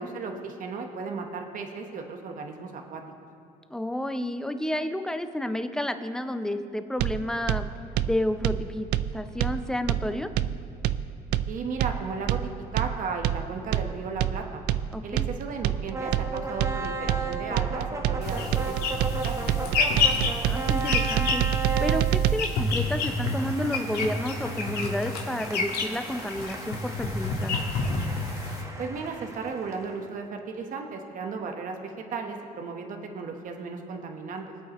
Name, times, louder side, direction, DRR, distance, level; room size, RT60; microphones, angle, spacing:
voice 1, 0.0-3.0 11.5-12.4 12.7-14.6 15.0-20.1 28.8-34.5, right 4 dB, 50° right, 3 dB, 1.2 m, -35 dB
voice 2, 3.7-7.7 8.1-8.9 9.1-10.3 14.9-15.3 20.4-21.4 21.8-27.6, left 1 dB, 5° left, 8 dB, 0.6 m, -31 dB
sound 1, 7.0-22.4, right 11 dB, 80° right, 0.4 m, -27 dB
sound 2, 15.9-30.1, right 3 dB, 20° right, 1.3 m, -36 dB
sound 3, 18.2-28.6, left 3 dB, 70° left, 1.7 m, -29 dB
23.5 x 8.3 x 3.0 m, 2.4 s
cardioid pair, 110°, 17 cm